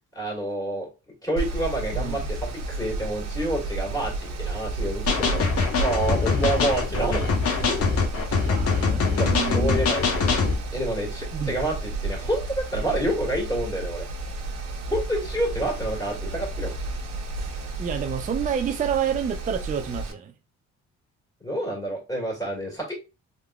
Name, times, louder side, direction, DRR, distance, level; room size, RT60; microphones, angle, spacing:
voice 1, 0.1-0.9 1.2-7.8 9.2-10.3 10.7-14.1 14.9-16.7 21.4-22.9, right 1 dB, 10° left, 2.0 m, -28 dB
Mechanical fan, 1.4-20.1, right 2 dB, 60° right, 0.9 m, -32 dB
voice 2, 1.9-2.3 8.4-9.8 11.3-11.5 17.8-20.3, right 8 dB, 25° right, 0.4 m, -29 dB
sound 1, 5.1-10.6, left 4 dB, 50° left, 1.0 m, -23 dB
3.6 x 2.9 x 2.2 m
cardioid pair, 90°, 30 cm